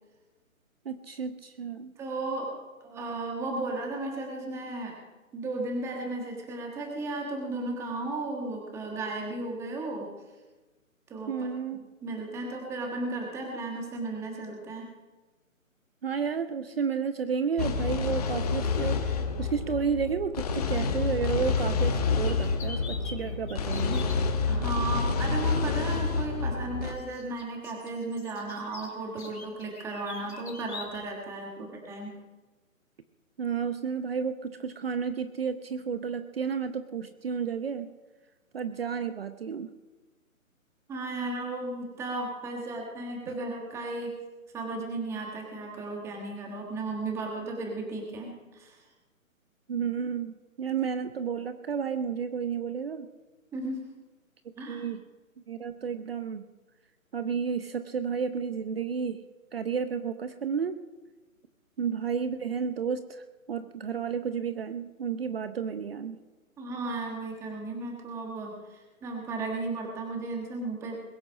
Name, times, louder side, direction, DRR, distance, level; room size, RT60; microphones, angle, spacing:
voice 1, 0.9-1.9 11.3-11.8 16.0-24.0 33.4-37.9 38.5-39.7 49.7-53.1 54.7-55.0 55.5-56.4 57.1-59.2 59.5-60.8 61.8-66.2, right 6 dB, 45° right, 11 dB, 0.8 m, -32 dB
voice 2, 2.0-2.5 2.8-4.9 5.3-10.1 11.1-11.5 12.0-14.9 24.5-32.1 40.9-44.1 44.5-48.8 53.5-53.8 54.6-54.8 66.6-71.0, right 2 dB, 5° right, 1 dB, 1.4 m, -35 dB
sound 1, 17.6-26.9, left 4 dB, 30° left, 1.1 m, -28 dB
sound 2, 22.2-24.2 25.6-25.7 27.0-31.0, left 4 dB, 50° left, 4.9 m, -45 dB
21.0 x 7.8 x 6.3 m, 1.2 s
figure-of-eight pair, 150°, 42 cm